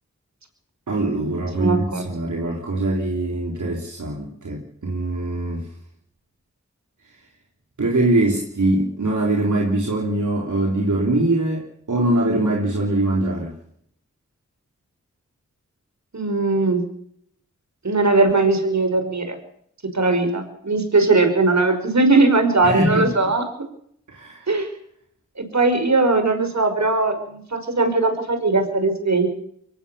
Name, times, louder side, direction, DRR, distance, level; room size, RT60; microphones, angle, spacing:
voice 1, 0.9-5.7 7.8-13.6 22.6-23.3 24.1-24.5, right 2 dB, 85° right, 0 dB, 3.7 m, -22 dB
voice 2, 1.6-2.1 16.1-16.8 17.8-19.4 19.9-23.4 24.5-24.7 25.4-29.3, right 3 dB, 70° right, 7 dB, 5.6 m, -19 dB
23.5 x 18.0 x 7.0 m, 0.68 s
wide cardioid pair, 45°, 29 cm